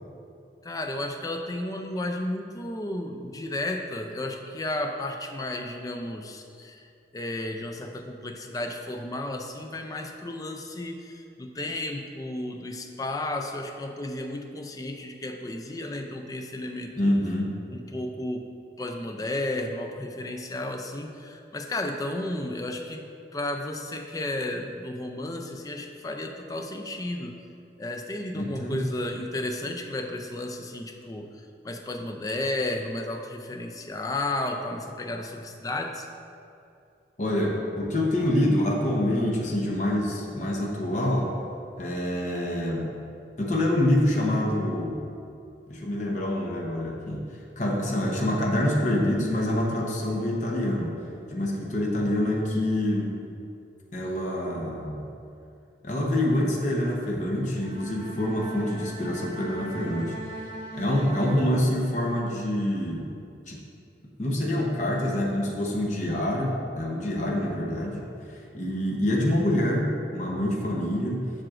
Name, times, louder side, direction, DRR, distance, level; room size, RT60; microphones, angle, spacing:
voice 1, 0.6-17.1 17.7-18.4 18.8-23.1 23.3-27.4 27.8-36.1, left 1 dB, 20° left, 4 dB, 0.3 m, -33 dB
voice 2, 17.0-17.6 28.3-28.8 37.2-41.3 41.8-42.9 43.4-45.1 45.7-47.3 47.6-51.0 51.3-53.2 53.9-55.1 55.8-60.2 60.7-63.1 63.5-63.6 64.2-71.3, left 1 dB, 40° left, -2 dB, 0.8 m, -26 dB
Bowed string instrument, 57.4-62.1, right 2 dB, 30° right, 1.3 m, -40 dB
7.5 x 5.9 x 2.5 m, 2.6 s
head